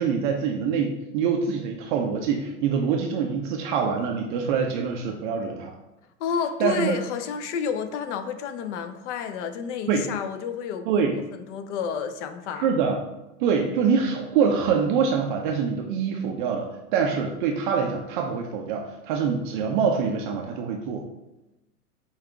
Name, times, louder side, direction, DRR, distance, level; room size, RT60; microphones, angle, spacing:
voice 1, 0.0-5.7 6.6-7.0 9.9-10.0 10.9-11.1 12.6-13.0 13.4-21.1, right 6 dB, 35° right, 2 dB, 0.4 m, -25 dB
voice 2, 6.2-11.0 11.5-12.7, left 7 dB, 50° left, 8 dB, 0.5 m, -30 dB
5.5 x 2.4 x 3.4 m, 0.97 s
hypercardioid pair, 100°, 47 cm